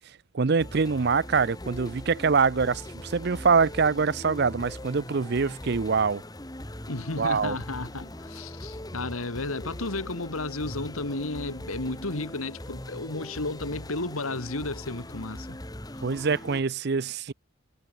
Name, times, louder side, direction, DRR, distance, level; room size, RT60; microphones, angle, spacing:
voice 1, 0.3-6.2 7.2-7.6 16.0-17.3, right 5 dB, 50° right, 0.5 m, -24 dB
sound 1, 0.6-16.6, left 1 dB, 20° left, 1.9 m, -41 dB
voice 2, 6.9-15.6, left 2 dB, 90° left, 2.3 m, -33 dB
head